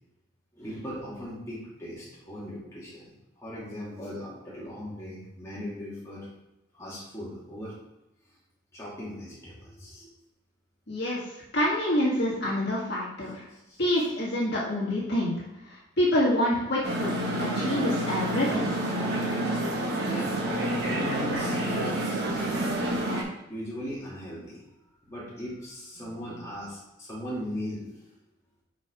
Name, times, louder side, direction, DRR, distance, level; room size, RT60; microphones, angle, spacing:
voice 1, 0.5-6.3 6.7-7.8 8.7-10.1 13.5-13.8 20.0-22.5 23.5-24.6 25.0-27.9, equal, 15° left, -8 dB, 2.2 m, -39 dB
voice 2, 10.9-11.2 11.5-13.5 13.8-18.7, left 1 dB, 50° left, -5 dB, 1.9 m, -27 dB
sound 1, 16.8-23.2, right 1 dB, 50° right, 1.5 m, -28 dB
5.7 x 4.8 x 4.9 m, 0.94 s
head